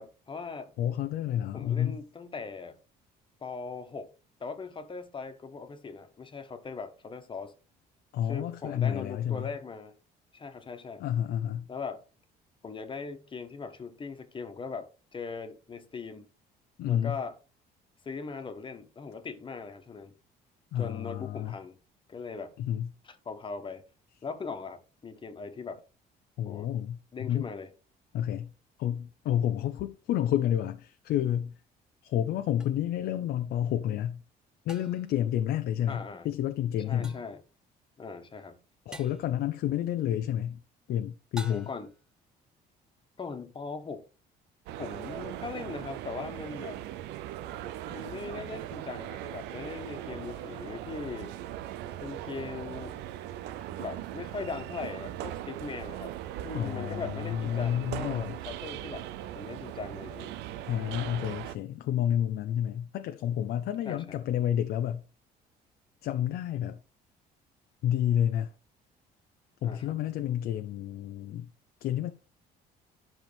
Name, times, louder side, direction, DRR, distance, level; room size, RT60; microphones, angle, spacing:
voice 1, 0.0-0.7 1.5-2.7 3.4-4.1 4.4-7.5 8.2-9.9 10.3-11.0 11.7-12.0 12.6-16.3 16.8-17.4 18.0-20.1 20.7-21.8 22.1-22.5 23.0-23.8 24.2-25.8 26.4-26.7 27.1-27.7 35.9-36.3 36.8-37.4 38.0-38.6 41.5-41.9 43.2-44.0 44.8-46.8 47.9-51.3 52.0-53.0 53.8-56.1 56.4-59.1 59.3-60.3 63.8-64.2 69.6-70.0, left 4 dB, 30° left, 1.4 m, -40 dB
voice 2, 0.8-2.0 8.1-9.5 11.0-11.7 16.8-17.2 20.7-21.6 22.6-22.9 26.4-27.0 27.3-27.5 28.1-28.5 28.8-31.5 32.0-34.2 34.7-37.2 38.9-40.6 40.9-41.7 56.5-58.4 60.7-65.0 66.0-66.8 67.8-68.5 69.6-71.5 71.8-72.1, left 10 dB, 70° left, 0.7 m, -30 dB
sound 1, 32.6-32.7 34.7-35.2 37.0-37.4 38.9-39.3 41.4-42.0, right 1 dB, 5° right, 1.2 m, -46 dB
sound 2, 44.7-61.6, right 12 dB, 90° right, 0.6 m, -39 dB
11.0 x 5.9 x 3.5 m
cardioid pair, 110°, 17 cm